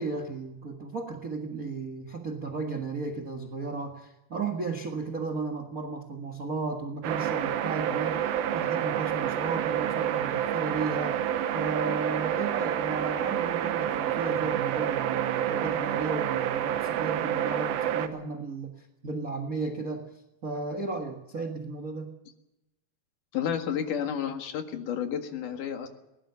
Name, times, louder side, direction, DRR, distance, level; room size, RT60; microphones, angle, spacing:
voice 1, 0.0-11.2 11.5-20.1 20.4-22.1, right 4 dB, 45° right, 6 dB, 1.1 m, -34 dB
sound 1, 7.0-18.1, right 10 dB, 85° right, 2.9 m, -28 dB
voice 2, 23.3-25.9, left 8 dB, 65° left, 5 dB, 3.2 m, -31 dB
22.0 x 18.0 x 6.9 m, 0.95 s
omnidirectional pair, 4.2 m